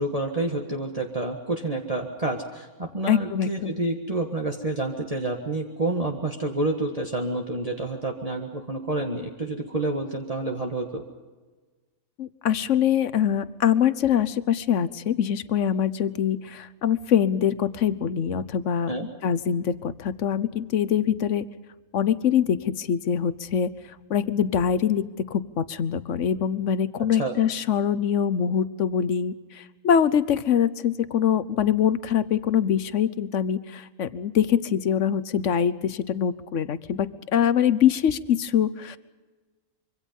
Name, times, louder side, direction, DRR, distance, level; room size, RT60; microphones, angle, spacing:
voice 1, 0.0-11.0 18.9-19.1 27.1-27.3, right 2 dB, 25° right, 1 dB, 1.7 m, -29 dB
voice 2, 3.1-3.7 12.2-18.9 19.2-21.4 21.9-23.7 24.1-39.0, left 8 dB, 65° left, 15 dB, 1.2 m, -24 dB
25.5 x 24.0 x 5.4 m, 1.3 s
omnidirectional pair, 1.4 m